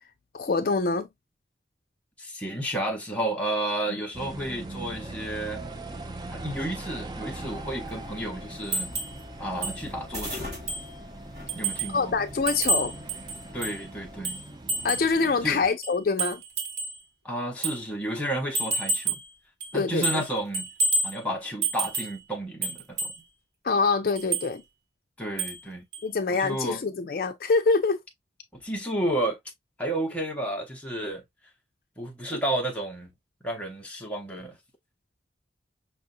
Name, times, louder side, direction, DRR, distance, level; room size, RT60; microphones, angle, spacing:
voice 1, 0.3-1.1 3.9-4.0 11.9-12.9 14.8-16.4 19.7-20.0 23.6-24.6 26.0-28.0 32.3-32.4, left 4 dB, 55° left, 0.4 m, -25 dB
voice 2, 2.2-5.6 6.3-8.9 9.4-10.5 11.5-12.1 13.5-14.4 15.4-15.6 17.2-19.2 19.7-20.7 21.0-23.1 25.2-25.8 26.3-26.8 28.5-29.4 29.8-31.2 32.0-33.1 33.4-34.6, right 1 dB, 5° left, 0.8 m, -31 dB
sound 1, 4.1-15.7, right 2 dB, 25° right, 0.5 m, -41 dB
sound 2, 7.4-14.2, left 1 dB, 40° right, 2.9 m, -43 dB
sound 3, 8.7-9.2 9.6-9.8 10.2-10.3 10.7-10.9 11.5-12.0 12.5-13.8 14.2-15.1 15.8-17.0 17.6-17.8 18.5-19.3 19.6-20.3 20.5-21.2 21.6-22.2 22.6-23.2 24.2-24.5 25.4-25.7 25.9-26.1, right 3 dB, 80° right, 1.3 m, -29 dB
5.5 x 2.5 x 2.5 m
head